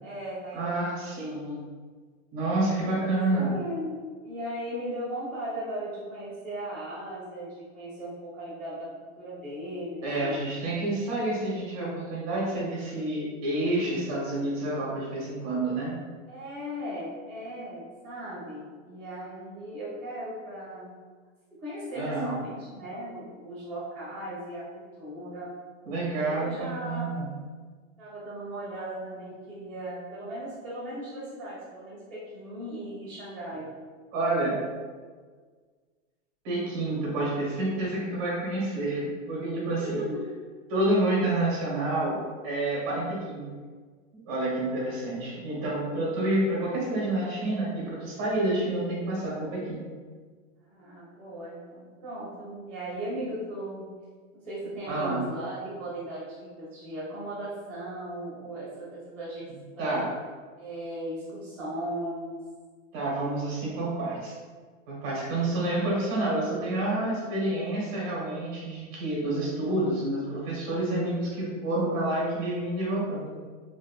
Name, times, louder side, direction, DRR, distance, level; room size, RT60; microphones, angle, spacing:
voice 1, 0.0-1.2 3.1-8.9 9.2-10.4 16.3-20.9 21.6-25.5 26.2-27.3 28.0-33.7 39.7-40.3 44.7-45.1 50.6-53.9 54.3-59.5 59.8-60.0 60.6-62.4, right 1 dB, ahead, -19 dB, 0.7 m, -37 dB
voice 2, 0.5-1.6 2.3-3.5 10.0-15.9 21.9-22.3 25.8-27.3 34.1-34.6 36.4-40.0 40.7-42.2 42.4-43.5 44.2-49.8 54.9-55.3 59.8-60.1 62.9-64.4 64.9-73.3, right 2 dB, 30° right, -5 dB, 1.1 m, -28 dB
3.9 x 3.0 x 2.4 m, 1.5 s
supercardioid pair, 175°, 39 cm